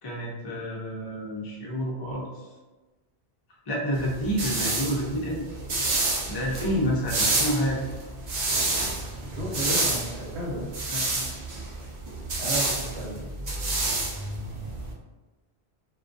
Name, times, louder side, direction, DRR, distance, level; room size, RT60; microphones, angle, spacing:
voice 1, 0.0-2.4 3.7-5.5 6.3-7.9 10.9-11.3, equal, 45° left, -3 dB, 0.3 m, -29 dB
sound 1, 4.0-14.9, right 2 dB, 55° right, 0.5 m, -29 dB
voice 2, 9.2-10.7 12.4-13.2, right 1 dB, 90° right, -4 dB, 1.0 m, -33 dB
2.2 x 2.2 x 2.5 m, 1.2 s
omnidirectional pair, 1.1 m